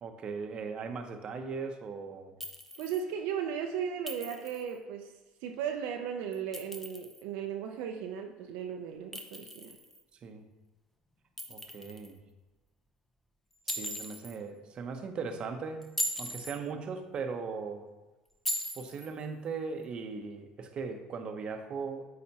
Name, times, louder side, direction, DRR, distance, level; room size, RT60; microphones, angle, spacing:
voice 1, 0.0-2.3 10.2-10.4 11.5-12.2 13.7-15.8 16.2-17.8 18.8-22.1, right 5 dB, 45° right, 6 dB, 0.8 m, -38 dB
Chink clink, 2.4-3.0 4.1-4.7 6.3-7.2 9.1-10.0 11.4-12.1 13.7-14.4 15.8-16.6 18.5-19.1, equal, 10° left, 0.7 m, -38 dB
voice 2, 2.8-5.1 5.4-9.7, right 8 dB, 80° right, 4 dB, 0.5 m, -36 dB
8.5 x 4.2 x 2.9 m, 1.1 s
supercardioid pair, 100°, 2 cm